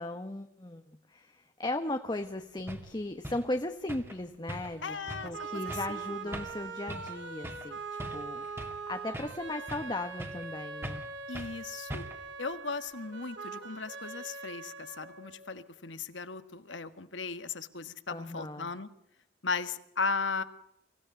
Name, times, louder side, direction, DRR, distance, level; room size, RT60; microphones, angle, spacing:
voice 1, 0.0-5.0 5.2-11.0 18.1-18.7, left 2 dB, 20° left, 7 dB, 1.0 m, -37 dB
sound 1, 2.2-2.3 2.7-2.9 3.2-3.5 3.9-4.2 4.5-4.8 5.1-5.3 5.7-5.9 6.3-6.6 6.9-7.2 7.4-7.7 8.0-8.8 9.1-9.9 10.2-10.5 10.8-11.1 11.3-11.6 11.9-12.3, right 1 dB, 15° right, 2.2 m, -41 dB
sound 2, 4.7-15.7, right 4 dB, 75° right, 3.8 m, -42 dB
voice 2, 4.8-5.5 5.9-6.4 11.3-12.1 12.4-18.9 19.4-20.4, left 4 dB, 80° left, 11 dB, 1.6 m, -36 dB
25.0 x 16.5 x 9.3 m, 0.82 s
head